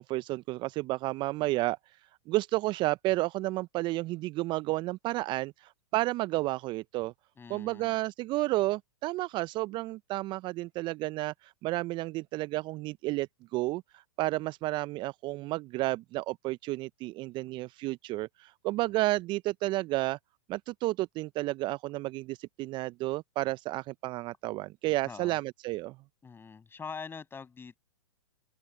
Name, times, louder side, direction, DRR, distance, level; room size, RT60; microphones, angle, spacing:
voice 1, 0.0-2.0 2.3-7.1 7.5-20.2 20.5-26.0, right 19 dB, 30° right, 0.6 m, -31 dB
voice 2, 7.4-8.0 25.0-25.4 26.2-27.8, left 5 dB, 15° left, 7.1 m, -44 dB
figure-of-eight pair, 110°, 15 cm